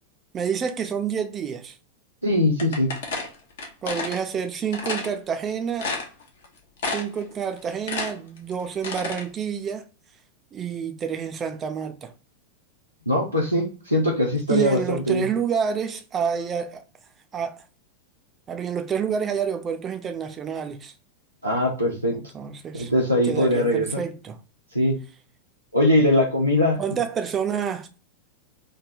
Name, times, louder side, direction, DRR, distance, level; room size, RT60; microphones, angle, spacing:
voice 1, 0.3-1.8 3.8-5.9 6.9-9.9 10.5-12.1 14.5-16.8 17.3-17.6 18.5-20.9 22.1-22.9 23.2-24.4 26.8-27.9, right 7 dB, 25° right, 0.4 m, -28 dB
voice 2, 2.2-2.9 13.1-15.2 21.4-22.2 22.7-23.9 24.7-25.0 25.7-26.8, left 1 dB, 90° right, 0.7 m, -21 dB
sound 1, 2.6-4.2 4.7-5.1 5.5-5.6 5.8-6.5 6.8-7.2 7.6-9.2, left 3 dB, 60° left, 0.8 m, -30 dB
3.2 x 2.1 x 2.5 m
figure-of-eight pair, 90°, 0 cm